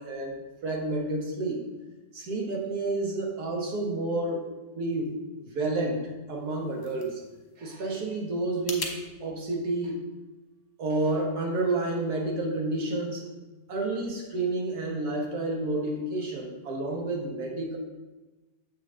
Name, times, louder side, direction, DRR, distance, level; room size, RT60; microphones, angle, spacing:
voice 1, 0.0-1.6 2.1-4.4 4.7-5.1 5.4-6.0 6.3-7.2 7.6-10.0 10.8-13.3 13.7-17.8, right 2 dB, 80° right, 0 dB, 1.8 m, -30 dB
sound 1, 6.3-9.0, left 3 dB, 50° left, 1.1 m, -41 dB
7.4 x 6.0 x 3.7 m, 1.1 s
omnidirectional pair, 1.6 m